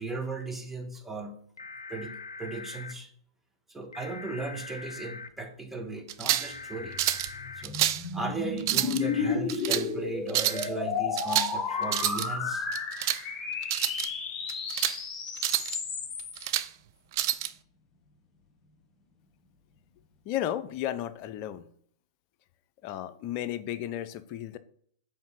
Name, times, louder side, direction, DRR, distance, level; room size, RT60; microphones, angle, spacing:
voice 1, 0.0-1.4 1.9-3.1 3.7-7.0 7.6-12.7, right 3 dB, 10° right, 3 dB, 1.5 m, -37 dB
sound 1, 1.6-2.9 3.9-5.3 6.3-7.6 9.0-9.4 10.3-10.7 11.7-12.0, left 4 dB, 90° left, 0.5 m, -42 dB
sound 2, 6.1-6.5 7.0-7.3 7.6-8.0 8.6-9.0 9.5-9.8 10.3-10.7 11.2-11.6 11.8-12.3 12.7-13.2 13.6-14.1 14.5-15.0 15.4-15.8 16.2-16.7 17.1-17.5, right 13 dB, 55° right, 0.5 m, -28 dB
sound 3, 6.8-16.5, left 5 dB, 25° left, 1.4 m, -33 dB
voice 2, 20.3-21.7 22.8-24.6, left 12 dB, 45° left, 12 dB, 0.6 m, -33 dB
5.4 x 4.7 x 6.3 m, 0.62 s
hypercardioid pair, 105°, 2 cm